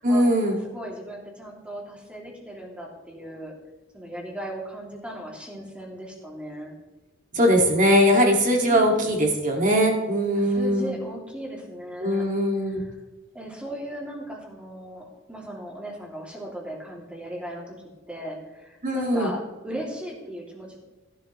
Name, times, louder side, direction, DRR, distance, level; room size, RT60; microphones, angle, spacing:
voice 1, 0.0-0.6 7.3-10.9 12.0-12.8 18.8-19.3, equal, 40° right, 1 dB, 2.2 m, -21 dB
voice 2, 0.6-3.5 3.9-6.7 8.6-8.9 10.3-12.3 12.6-12.9 13.3-17.8 18.1-20.8, equal, 5° right, -2 dB, 2.6 m, -37 dB
15.5 x 11.5 x 3.1 m, 1.2 s
head